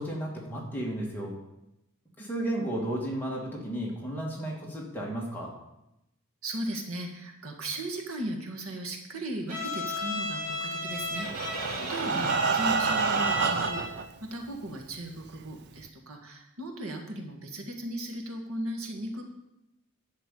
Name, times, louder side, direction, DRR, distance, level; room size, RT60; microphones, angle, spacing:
voice 1, 0.0-1.4 2.2-5.5 12.1-12.3, right 1 dB, 10° left, -3 dB, 2.4 m, -33 dB
voice 2, 6.4-19.3, right 1 dB, 70° right, 2 dB, 2.0 m, -37 dB
Bowed string instrument, 9.5-14.1, left 1 dB, 90° right, 2.7 m, -34 dB
Breathing, 11.1-14.1 14.8-14.9 15.3-15.4 15.8-15.9, right 5 dB, 50° right, 0.6 m, -28 dB
11.0 x 5.9 x 8.5 m, 0.89 s
head